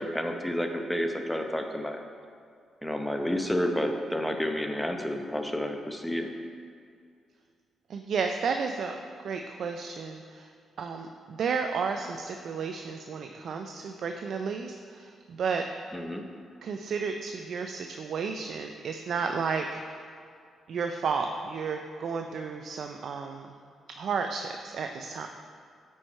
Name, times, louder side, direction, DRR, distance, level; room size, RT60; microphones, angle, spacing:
voice 1, 0.0-2.0 2.8-6.3 15.9-16.2, equal, 5° left, 4 dB, 0.8 m, -30 dB
voice 2, 7.9-9.0 9.2-10.5 10.8-15.6 16.6-20.1 20.7-23.5 24.0-25.3, right 5 dB, 65° right, 5 dB, 0.4 m, -32 dB
8.4 x 4.7 x 4.5 m, 2.3 s
cardioid pair, 80°, 0 cm